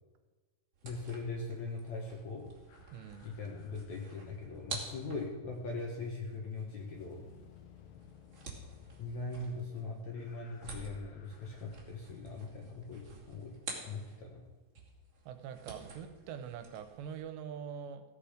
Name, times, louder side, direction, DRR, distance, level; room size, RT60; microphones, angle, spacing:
sound 1, 0.7-14.4 14.7-17.2, right 4 dB, 35° right, 2.7 m, -50 dB
voice 1, 0.8-2.5 3.2-7.2 9.0-13.5 13.8-14.4, left 3 dB, 60° left, 0 dB, 2.0 m, -41 dB
sound 2, 2.7-5.0 6.7-11.8, left 8 dB, 80° left, 3.1 m, -59 dB
voice 2, 2.9-3.3 15.3-18.0, right 8 dB, 85° right, 8 dB, 3.1 m, -44 dB
16.0 x 8.6 x 5.0 m, 1.3 s
omnidirectional pair, 4.9 m